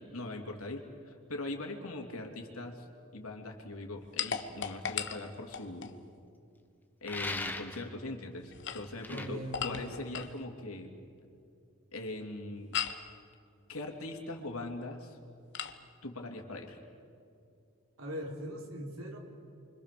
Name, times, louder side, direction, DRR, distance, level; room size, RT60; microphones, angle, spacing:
voice 1, 0.0-2.9 3.1-5.9 7.0-10.9 11.9-12.8 13.7-15.2 16.0-16.8, left 2 dB, 75° left, 2 dB, 3.1 m, -41 dB
sound 1, 4.2-6.0 8.4-10.4 12.7-13.1 15.5-15.8, left 8 dB, 55° left, 1.3 m, -37 dB
sound 2, 7.0-7.9 9.0-9.3, left 2 dB, 10° left, 1.3 m, -38 dB
voice 2, 9.1-10.0 18.0-19.2, equal, 75° right, 1 dB, 4.5 m, -40 dB
29.5 x 25.0 x 6.9 m, 2.5 s
head